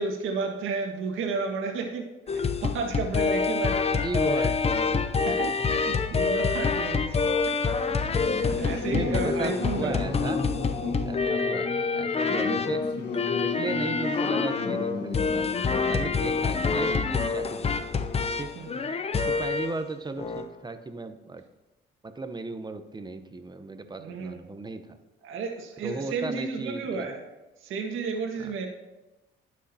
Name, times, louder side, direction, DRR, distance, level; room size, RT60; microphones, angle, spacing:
voice 1, 0.0-2.1 2.3-4.0 4.3-4.5 5.3-10.1 10.8-11.2 18.6-18.9 24.0-24.4 25.2-27.2 27.6-28.7, right 4 dB, 85° right, 2 dB, 1.7 m, -33 dB
sound 1, 2.3-19.8 20.2-20.5, left 4 dB, 30° left, 0.7 m, -27 dB
voice 2, 4.0-5.6 6.3-6.4 8.9-10.4 11.1-12.8 13.4-15.5 15.8-18.1 18.4-18.5 19.3-21.4 22.0-25.0 25.8-27.0 28.4-28.5, right 3 dB, 20° right, 8 dB, 0.9 m, -36 dB
Singing / Musical instrument, 7.9-18.0, left 4 dB, 60° left, 1.6 m, -34 dB
18.5 x 6.3 x 2.9 m, 1.1 s
cardioid pair, 90°, 20 cm